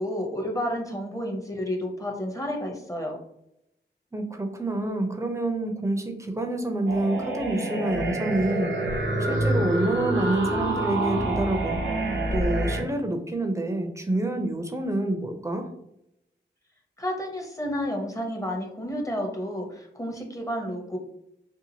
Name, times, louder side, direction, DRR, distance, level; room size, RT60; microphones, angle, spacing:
voice 1, 0.0-3.1 17.0-21.0, equal, 15° left, 1 dB, 0.9 m, -31 dB
voice 2, 4.1-15.7, right 1 dB, 15° right, 4 dB, 0.6 m, -28 dB
sound 1, 6.9-12.8, right 2 dB, 85° right, 0.6 m, -27 dB
2.7 x 2.4 x 2.8 m, 0.79 s
cardioid pair, 40°, 19 cm